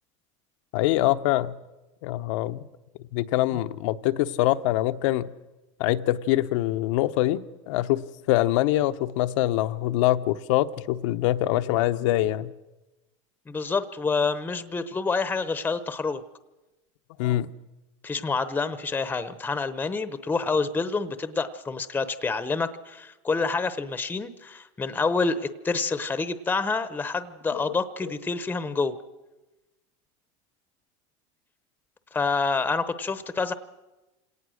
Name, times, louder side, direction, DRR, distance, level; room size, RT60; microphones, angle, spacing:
voice 1, 0.7-1.5 2.0-2.6 3.1-5.3 5.8-12.5 17.2-17.5 27.5-27.6, left 15 dB, 75° left, 12 dB, 0.9 m, -24 dB
voice 2, 13.5-16.2 18.0-29.0 32.1-33.5, left 4 dB, 10° left, 13 dB, 0.8 m, -27 dB
27.5 x 18.0 x 6.4 m, 1.1 s
supercardioid pair, 135°, 16 cm